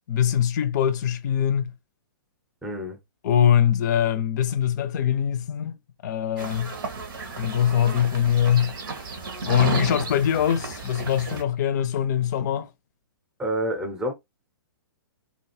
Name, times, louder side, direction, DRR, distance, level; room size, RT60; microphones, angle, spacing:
voice 1, 0.1-1.7 3.2-5.8 6.0-6.7 7.4-8.7 9.4-12.7, left 9 dB, 50° left, 0.6 m, -22 dB
voice 2, 2.6-3.0 13.4-14.1, right 1 dB, 5° right, 0.7 m, -28 dB
sound 1, 6.4-11.4, right 3 dB, 65° right, 0.9 m, -32 dB
2.6 x 2.3 x 3.0 m
hypercardioid pair, 125°, 12 cm